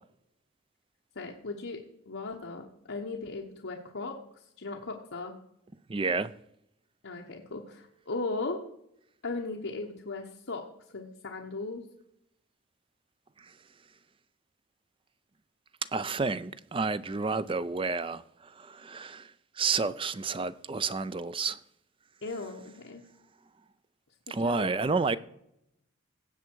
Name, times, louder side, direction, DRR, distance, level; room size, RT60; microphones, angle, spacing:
voice 1, 1.1-5.3 7.0-8.6 9.2-11.9 22.2-23.1 24.3-24.7, left 3 dB, 65° left, 1.2 m, -37 dB
voice 2, 5.9-6.3 13.4-13.5 15.9-19.3 19.6-21.6 24.3-25.2, right 4 dB, 25° right, 0.4 m, -30 dB
17.0 x 7.4 x 4.6 m
head